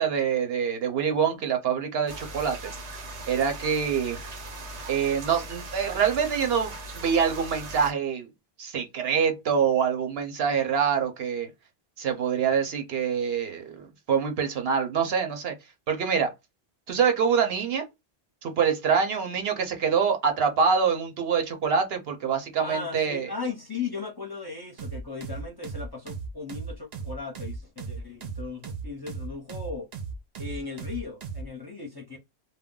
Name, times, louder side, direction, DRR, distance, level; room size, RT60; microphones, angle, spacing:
voice 1, 0.0-2.7 3.3-4.2 4.9-8.3 8.6-11.5 12.0-15.5 15.9-16.3 16.9-17.9 18.4-23.3, right 7 dB, 70° right, 0.9 m, -25 dB
sound 1, 2.1-7.9, right 2 dB, 85° right, 1.1 m, -39 dB
voice 2, 22.6-29.9 30.4-32.2, left 4 dB, 25° left, 0.6 m, -37 dB
sound 2, 24.8-31.5, right 5 dB, 50° right, 0.5 m, -36 dB
2.3 x 2.1 x 3.6 m
omnidirectional pair, 1.1 m